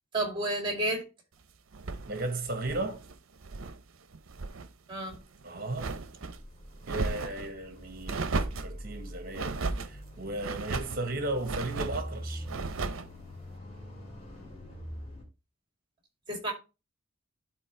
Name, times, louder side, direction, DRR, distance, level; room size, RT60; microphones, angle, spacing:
voice 1, 0.1-1.0 4.9-5.2 16.3-16.5, right 1 dB, 25° right, 2.4 m, -30 dB
sound 1, 1.7-3.8 4.1-4.7 5.1-6.4 6.8-7.5 8.1-8.7 9.3-9.9 10.4-11.0 11.4-12.1 12.5-13.1, right 3 dB, 80° right, 0.7 m, -35 dB
voice 2, 2.1-3.0 5.4-6.0 6.9-12.5, right 2 dB, 45° right, 1.2 m, -35 dB
sound 2, 6.2-15.2, equal, 30° left, 2.8 m, -44 dB
11.0 x 4.3 x 3.2 m
head